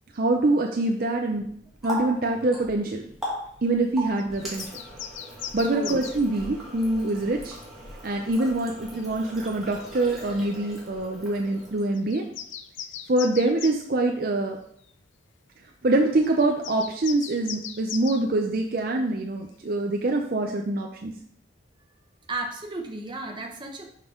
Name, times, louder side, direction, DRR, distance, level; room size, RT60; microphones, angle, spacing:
voice 1, 0.1-1.5 1.8-3.1 3.6-4.7 5.5-7.6 8.0-12.2 13.1-14.6 15.8-21.1, right 2 dB, 45° right, 2 dB, 0.5 m, -25 dB
Water tap faucet, 1.3-12.1, equal, ahead, 1.7 m, -39 dB
sound 1, 4.2-6.2 9.0-9.1 9.7-9.9 10.3-10.5 11.5-11.6 11.9-13.8 14.9-15.0 16.2-18.2, left 9 dB, 65° left, 0.5 m, -39 dB
voice 2, 5.7-6.0 22.3-23.9, right 2 dB, 25° right, 2 dB, 0.8 m, -33 dB
6.1 x 5.2 x 3.7 m, 0.65 s
head